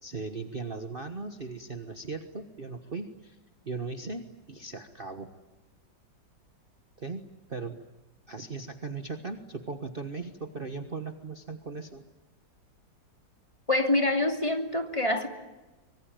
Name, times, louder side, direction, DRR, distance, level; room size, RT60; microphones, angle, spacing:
voice 1, 0.0-3.4 3.6-5.3 7.0-7.2 7.5-7.8 8.3-12.0, right 4 dB, 30° right, 7 dB, 1.4 m, -38 dB
voice 2, 13.7-15.3, left 2 dB, 15° left, 5 dB, 2.7 m, -26 dB
25.0 x 23.0 x 9.0 m, 1.1 s
omnidirectional pair, 2.0 m